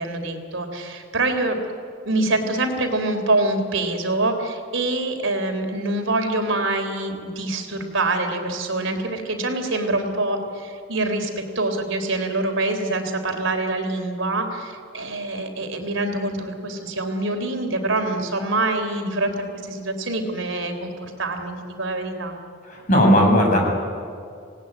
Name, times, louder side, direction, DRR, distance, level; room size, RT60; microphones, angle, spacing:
voice 1, 0.0-1.6 2.0-22.4, right 2 dB, 70° right, 5 dB, 3.7 m, -25 dB
voice 2, 22.7-23.6, equal, 40° left, 0 dB, 7.4 m, -16 dB
27.5 x 19.0 x 9.9 m, 2.3 s
head